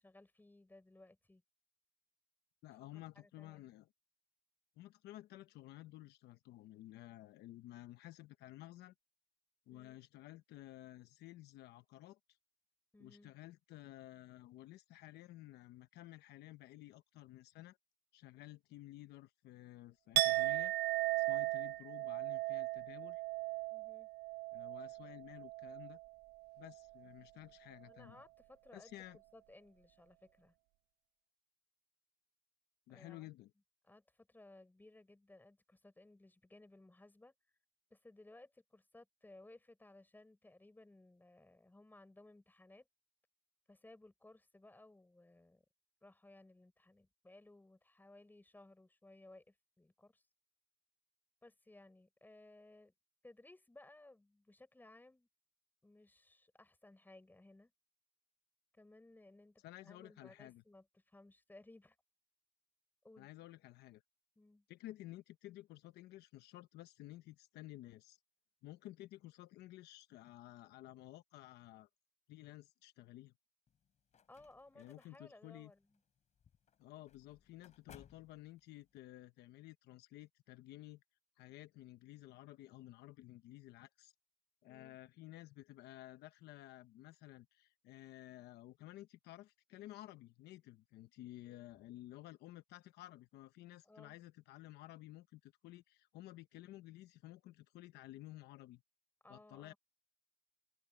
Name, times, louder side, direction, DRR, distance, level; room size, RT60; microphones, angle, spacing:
voice 1, 0.0-1.4 2.9-3.7 9.7-10.0 12.9-13.3 23.7-24.1 27.8-30.6 32.9-33.3 33.8-37.3 37.9-42.9 43.7-45.6 46.0-50.2 51.4-52.9 53.2-55.3 55.8-57.7 58.7-62.0 63.0-63.3 64.4-64.7 74.3-76.0 84.7-85.0 93.8-94.2 99.2-99.8, left 2 dB, 10° left, 7.4 m, -61 dB
voice 2, 2.6-3.9 4.8-8.9 9.7-12.2 13.0-17.8 18.1-20.7 21.2-23.2 24.5-26.0 26.6-28.2 28.7-29.2 32.9-33.5 59.6-60.6 63.2-64.0 64.7-68.2 68.6-71.9 72.3-73.3 74.8-75.7 76.8-81.0 81.4-84.1 84.6-98.8 99.3-99.7, left 16 dB, 80° left, 1.0 m, -54 dB
Chink clink, 20.2-26.1 26.4-26.8, right 18 dB, 75° right, 0.5 m, -37 dB
sound 1, 73.7-79.0, left 7 dB, 45° left, 3.9 m, -65 dB
open air
cardioid pair, 110°, 17 cm